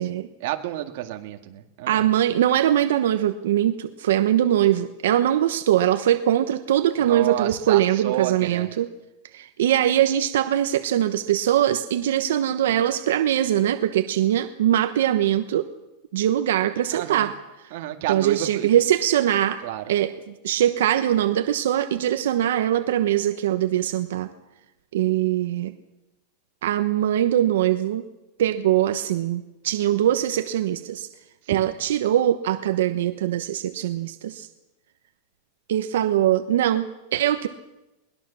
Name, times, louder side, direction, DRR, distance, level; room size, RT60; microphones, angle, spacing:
voice 1, 0.4-2.1 7.0-8.7 16.9-17.3 17.7-18.7 19.6-19.8 31.4-31.7, right 13 dB, 50° right, 5 dB, 1.9 m, -30 dB
voice 2, 1.9-8.9 9.3-15.7 16.1-17.3 18.1-19.6 19.9-20.1 20.4-24.3 24.9-25.7 26.6-28.0 28.4-31.1 31.5-34.5 35.7-37.5, right 11 dB, 80° right, 8 dB, 1.1 m, -22 dB
21.5 x 20.0 x 7.1 m, 1.0 s
supercardioid pair, 175°, 0 cm